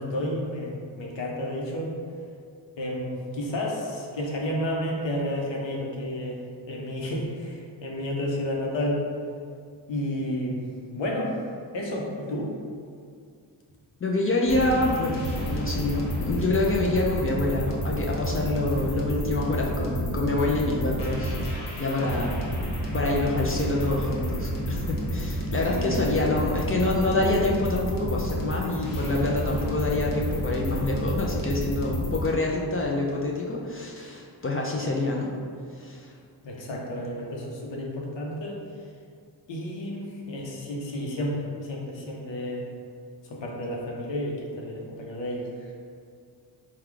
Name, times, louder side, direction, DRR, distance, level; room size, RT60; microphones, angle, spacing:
voice 1, 0.0-1.9 2.8-9.0 9.9-10.6 10.9-11.3 11.7-12.5 25.7-26.5 36.4-38.6 39.5-42.7 43.2-45.7, left 1 dB, 85° left, -2 dB, 0.8 m, -31 dB
voice 2, 14.0-21.4 21.8-22.4 22.9-35.3 35.7-36.2, left 2 dB, 30° left, -2 dB, 0.4 m, -26 dB
sound 1, 14.5-32.3, equal, 50° left, 0.9 m, -30 dB
3.7 x 2.3 x 4.5 m, 2.3 s
wide cardioid pair, 120°, 43 cm